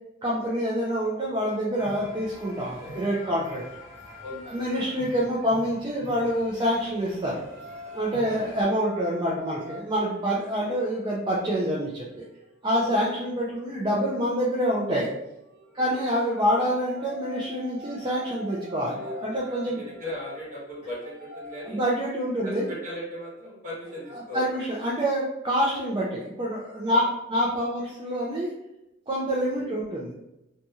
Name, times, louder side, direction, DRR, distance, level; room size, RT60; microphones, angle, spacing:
voice 1, 0.2-3.6 4.5-7.4 7.9-12.3 12.6-15.1 15.7-19.8 21.6-22.6 24.1-27.0 27.3-28.5 29.1-30.1, equal, 25° right, -6 dB, 0.4 m, -26 dB
sound 1, 1.7-8.6, left 1 dB, 40° left, 0.7 m, -46 dB
voice 2, 4.2-5.0 8.2-8.5 12.7-12.9 15.7-16.0 18.9-21.8 22.4-24.5 26.8-27.0 29.5-29.7, equal, 45° right, -6 dB, 1.1 m, -38 dB
sound 2, 5.9-14.1 15.3-22.1, left 1 dB, 75° right, 0.7 m, -46 dB
2.6 x 2.3 x 2.8 m, 0.89 s
head